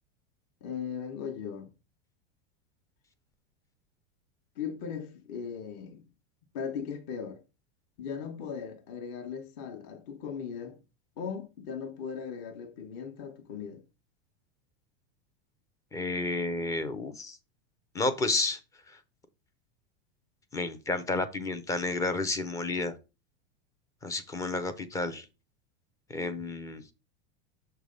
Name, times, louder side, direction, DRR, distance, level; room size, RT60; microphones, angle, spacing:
voice 1, 0.6-1.7 4.6-6.0 6.5-7.4 8.0-10.8 11.2-13.8, left 7 dB, 45° left, 1.1 m, -38 dB
voice 2, 15.9-17.4 17.9-18.6 20.5-22.9 24.0-25.3 26.1-26.8, left 3 dB, 10° left, 0.4 m, -31 dB
6.7 x 3.3 x 5.1 m
supercardioid pair, 155°, 32 cm